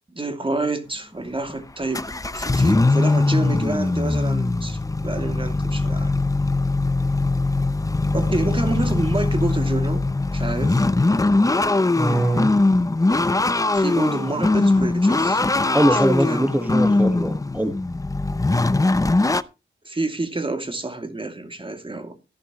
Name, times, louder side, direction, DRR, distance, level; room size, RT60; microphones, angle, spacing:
voice 1, 0.1-2.0 2.3-6.1 8.1-10.0 10.3-10.9 13.7-15.4 15.9-16.5 19.8-22.2, right 2 dB, 25° right, 2.7 m, -28 dB
sound 1, 1.3-1.5 1.9-19.4, left 2 dB, 15° left, 0.7 m, -21 dB
voice 2, 12.0-12.5 15.7-17.7, right 1 dB, 10° right, 1.7 m, -21 dB
14.5 x 11.0 x 3.1 m
wide cardioid pair, 90°, 20 cm